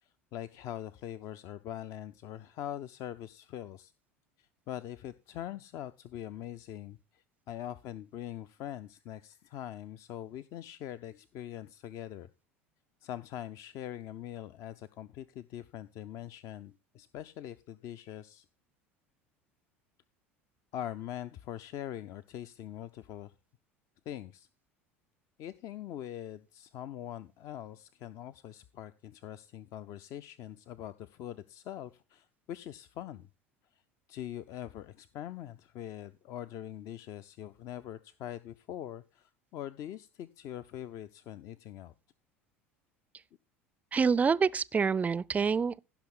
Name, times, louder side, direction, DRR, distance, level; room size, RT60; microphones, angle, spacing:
voice 1, 0.0-3.9 4.4-12.3 13.0-18.4 20.7-23.3 24.1-24.5 25.4-33.3 33.7-33.8 34.1-41.9, left 11 dB, 50° left, 0.5 m, -43 dB
voice 2, 43.9-45.8, right 5 dB, 20° right, 0.4 m, -27 dB
16.0 x 5.8 x 3.7 m
figure-of-eight pair, 70°, 7 cm